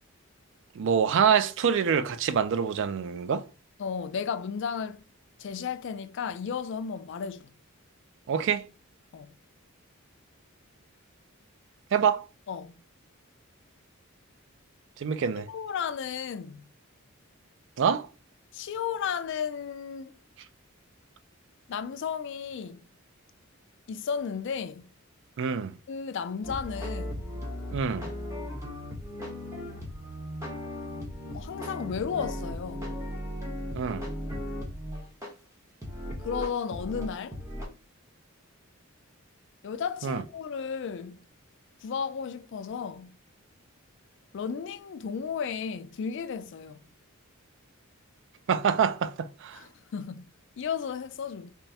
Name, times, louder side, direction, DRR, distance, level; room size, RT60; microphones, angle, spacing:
voice 1, 0.8-3.5 8.3-8.7 11.9-12.2 15.0-15.5 17.8-18.1 25.4-25.7 27.7-28.1 33.7-34.1 40.0-40.2 48.5-49.6, right 7 dB, 60° right, 0.3 m, -26 dB
voice 2, 3.8-5.0 5.4-7.5 9.1-9.3 12.5-12.7 15.5-16.7 18.5-20.1 21.7-22.8 23.9-24.9 25.9-27.3 31.3-32.9 36.2-37.4 39.6-41.2 41.8-43.1 44.3-46.8 49.5-50.2 50.6-51.5, left 6 dB, 55° left, 0.3 m, -34 dB
sound 1, 26.4-35.3 35.8-37.7, left 1 dB, 15° right, 0.9 m, -37 dB
3.4 x 2.1 x 4.1 m
head